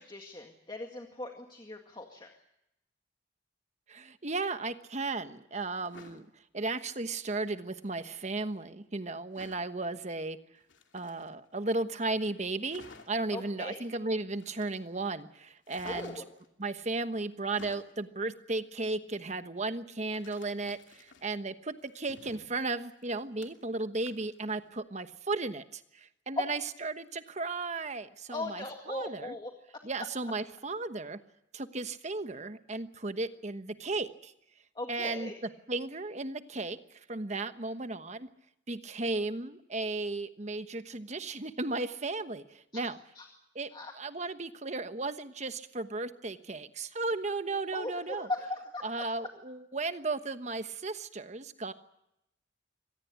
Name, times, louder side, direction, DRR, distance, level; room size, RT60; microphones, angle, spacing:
voice 1, 0.0-2.3 13.3-13.8 15.8-16.3 28.3-29.5 34.8-35.3 43.2-43.3 43.7-43.9 47.7-49.1, left 2 dB, 25° left, 3 dB, 2.0 m, -39 dB
voice 2, 3.9-6.3 6.5-10.4 10.9-16.2 16.6-29.3 29.8-31.2 31.5-34.3 34.9-35.3 35.7-38.3 38.7-43.0 43.5-43.7 43.9-48.3 48.8-51.7, right 3 dB, 40° right, 10 dB, 1.2 m, -35 dB
sound 1, 5.7-6.2 7.8-8.3 9.3-9.7 10.6-11.6 12.0-12.1 12.3-12.4 12.7-13.3 14.4-15.0 15.7-16.5 17.3-18.0 20.1-21.4 21.8-23.8 24.1-24.4 24.8-24.9, left 3 dB, 85° left, 2.7 m, -53 dB
25.0 x 18.5 x 8.3 m, 0.84 s
head